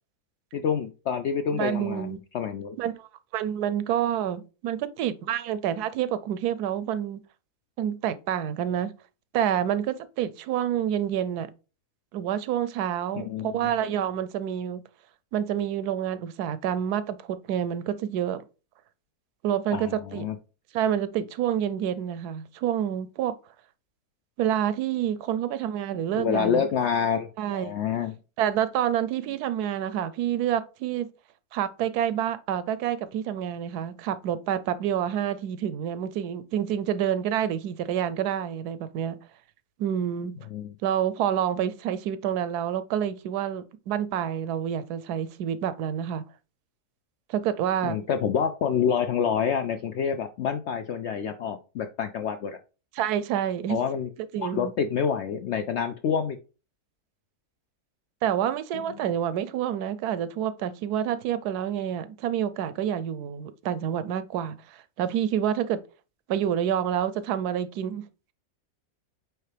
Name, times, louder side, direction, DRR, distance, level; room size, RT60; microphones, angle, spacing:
voice 1, 0.5-2.8 13.1-13.7 19.7-20.4 26.1-28.2 40.5-40.7 47.8-52.6 53.7-54.1 54.4-56.4 58.7-59.1, left 7 dB, 70° left, 0.6 m, -28 dB
voice 2, 1.5-2.2 2.8-7.2 7.8-8.9 9.3-11.5 12.1-14.8 15.3-18.4 19.4-20.3 20.7-23.4 24.4-26.7 27.4-27.8 28.4-31.1 31.5-39.2 39.8-40.4 40.8-46.2 47.3-48.0 52.9-53.8 54.3-54.7 58.2-65.8 66.3-68.0, right 10 dB, 85° right, 1.1 m, -28 dB
8.8 x 3.3 x 3.3 m
omnidirectional pair, 1.6 m